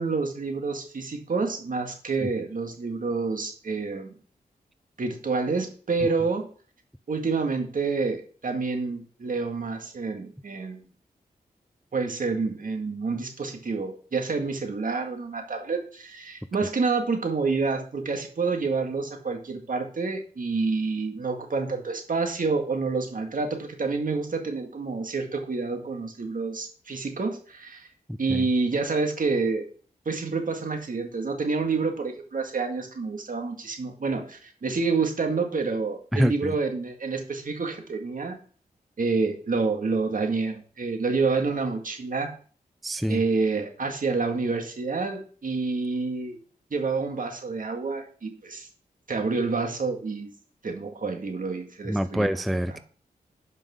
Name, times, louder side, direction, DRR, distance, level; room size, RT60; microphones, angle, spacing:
voice 1, 0.0-4.2 5.0-6.5 7.1-10.8 11.9-27.9 28.2-29.7 30.1-38.4 39.0-42.3 43.1-46.4 46.7-48.7 49.1-50.3 50.6-52.3 52.7-52.8, right 4 dB, 60° right, 1.9 m, -28 dB
voice 2, 36.1-36.5 42.8-43.2 51.9-52.8, equal, ahead, 0.4 m, -25 dB
11.0 x 5.5 x 3.7 m
cardioid pair, 55°, 16 cm